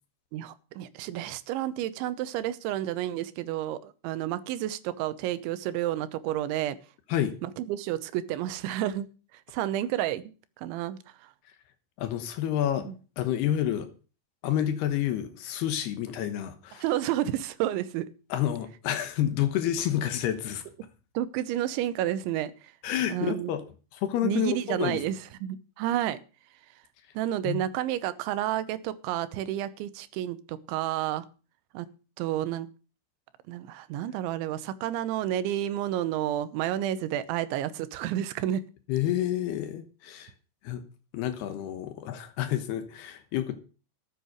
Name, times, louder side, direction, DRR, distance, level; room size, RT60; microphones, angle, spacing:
voice 1, 0.3-6.8 7.4-9.1 9.5-10.2 10.6-11.0 12.9-13.0 16.8-18.1 21.1-22.5 23.1-23.5 24.2-26.2 27.2-31.3 31.7-31.9 32.2-32.7 33.5-38.7, right 12 dB, 90° right, 14 dB, 3.3 m, -30 dB
voice 2, 12.0-12.9 13.2-13.9 14.4-16.8 18.3-20.6 22.8-23.6 23.9-25.0 27.4-27.7 38.9-40.3 40.6-40.8 41.1-43.6, left 11 dB, 70° left, 9 dB, 2.9 m, -29 dB
13.5 x 7.6 x 6.4 m, 0.36 s
omnidirectional pair, 5.2 m